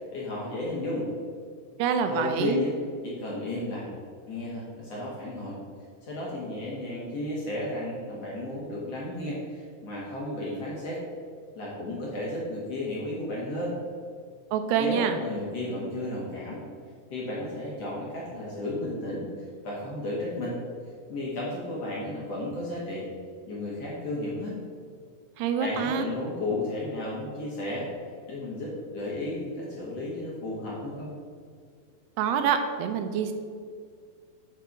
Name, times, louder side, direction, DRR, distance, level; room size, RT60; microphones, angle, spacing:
voice 1, 0.1-1.1 2.1-2.7 3.0-4.0 4.3-5.6 6.0-11.0 11.6-13.8 14.8-16.6 17.1-19.3 19.6-20.6 21.1-23.1 23.5-24.5 25.6-27.9 28.3-31.1, left 1 dB, 55° left, -5 dB, 2.0 m, -33 dB
voice 2, 1.8-2.6 14.5-15.2 25.4-26.1 32.2-33.3, right 7 dB, 90° right, 7 dB, 2.9 m, -26 dB
8.1 x 5.6 x 6.1 m, 2.1 s
omnidirectional pair, 4.7 m